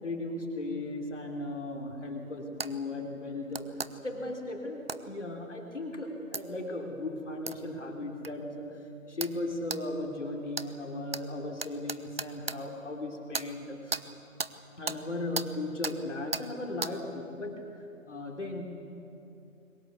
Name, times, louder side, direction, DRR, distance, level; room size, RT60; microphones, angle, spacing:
voice 1, 0.0-3.7 4.0-8.7 9.1-14.0 14.8-17.6 18.1-18.7, left 2 dB, 55° left, 2 dB, 3.5 m, -36 dB
sound 1, 2.6-2.7 3.5-3.9 4.9-5.0 6.3-6.4 7.5-7.6 8.2-8.3 9.2-9.4 9.7-9.8 10.5-10.7 11.1-11.2 11.6-12.6 13.3-13.5 13.9-14.0 14.4-14.5 14.9-15.0 15.3-15.5 15.8-16.0 16.3-16.5 16.8-16.9, right 4 dB, 45° right, 0.7 m, -34 dB
22.5 x 19.5 x 8.2 m, 2.7 s
figure-of-eight pair, 155°, 42 cm